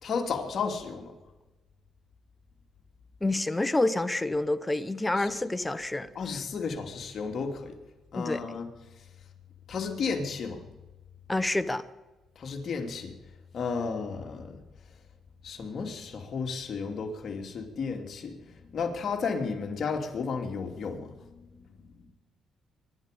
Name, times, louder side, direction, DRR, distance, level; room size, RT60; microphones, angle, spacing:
voice 1, 0.0-1.1 5.2-5.3 6.1-7.7 8.1-8.7 9.7-10.6 12.4-13.1 13.5-14.6 15.4-18.3 18.7-21.1 21.8-22.1, left 5 dB, 55° left, 3 dB, 2.9 m, -33 dB
voice 2, 3.2-6.1 8.1-8.4 11.3-11.8, left 2 dB, 15° left, 12 dB, 1.0 m, -28 dB
24.0 x 11.5 x 5.3 m, 1.1 s
cardioid pair, 90°, 0 cm